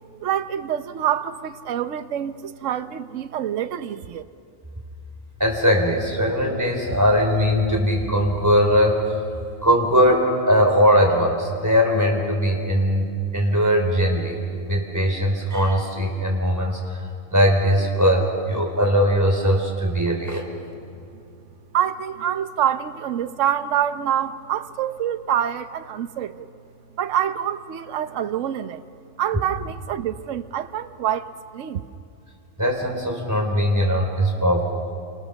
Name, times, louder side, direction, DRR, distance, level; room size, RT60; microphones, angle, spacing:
voice 1, 0.2-4.2 21.7-26.5 26.9-28.8 29.2-31.8, right 10 dB, 65° right, 1.1 m, -26 dB
voice 2, 5.4-9.0 9.6-13.1 13.3-14.4 14.7-17.0 17.3-20.5 32.6-34.6, equal, 10° right, 4.3 m, -20 dB
28.5 x 26.5 x 7.0 m
omnidirectional pair, 1.4 m